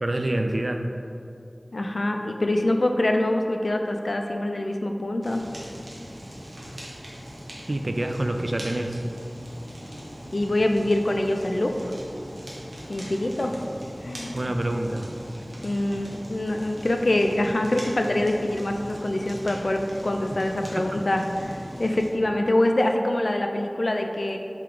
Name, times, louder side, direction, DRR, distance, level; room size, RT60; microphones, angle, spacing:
voice 1, 0.0-0.8 7.7-9.0 14.3-15.1 20.7-20.9, right 1 dB, 55° right, 5 dB, 0.3 m, -27 dB
voice 2, 1.7-5.4 10.3-11.9 12.9-13.6 14.0-14.3 15.6-24.4, left 1 dB, 70° left, 4 dB, 0.3 m, -25 dB
Fire, 5.2-22.1, equal, 80° right, 0.9 m, -40 dB
3.6 x 2.9 x 4.7 m, 2.5 s
wide cardioid pair, 50°, 0 cm